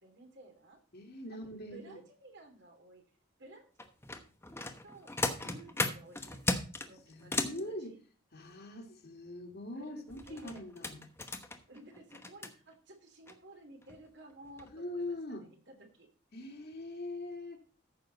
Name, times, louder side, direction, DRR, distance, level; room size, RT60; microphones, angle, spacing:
voice 1, 0.0-0.8 1.3-1.4 1.7-3.0 3.4-3.7 4.8-5.1 5.4-6.4 6.8-8.0 9.7-10.6 11.7-16.1, right 1 dB, 55° right, 3.0 m, -54 dB
voice 2, 0.9-2.0 7.1-8.0 8.3-11.1 14.7-15.5 16.3-17.6, left 1 dB, 50° left, 2.2 m, -42 dB
sound 1, 3.8-7.6 10.1-12.5 13.3-13.4 13.8-14.0 14.4-14.7 15.0-15.1, left 2 dB, 10° left, 1.0 m, -36 dB
14.5 x 6.4 x 4.0 m
head